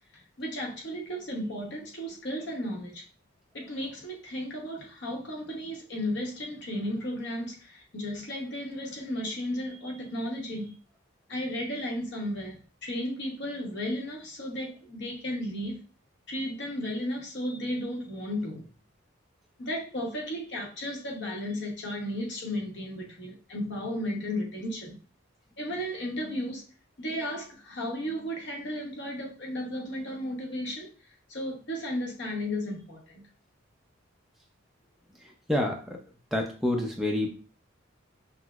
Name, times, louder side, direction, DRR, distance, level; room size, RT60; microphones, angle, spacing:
voice 1, 0.1-3.0 3.5-10.7 11.3-15.8 16.3-18.6 19.6-25.0 25.6-26.6 27.0-30.9 31.3-33.2, equal, 55° left, 0.9 m, -34 dB
voice 2, 35.5-36.0 36.3-37.4, left 1 dB, ahead, 0.5 m, -28 dB
5.9 x 2.0 x 2.3 m
head